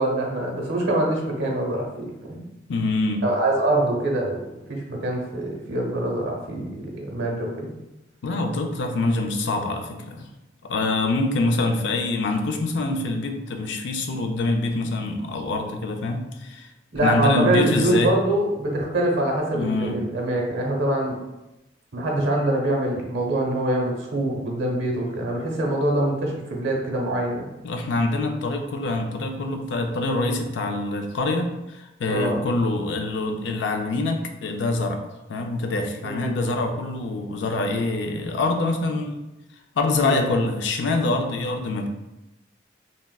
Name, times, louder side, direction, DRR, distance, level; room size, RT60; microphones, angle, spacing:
voice 1, 0.0-2.4 3.2-7.7 16.9-21.2 21.9-27.4 32.1-32.4 36.0-36.3 40.0-40.2, right 1 dB, 85° right, 0 dB, 0.7 m, -24 dB
voice 2, 2.7-3.2 8.2-10.3 10.6-16.7 17.0-18.1 19.5-20.0 27.6-35.0 35.3-39.2 39.8-41.9, left 2 dB, 70° left, 5 dB, 0.4 m, -25 dB
3.4 x 2.0 x 2.2 m, 0.97 s
head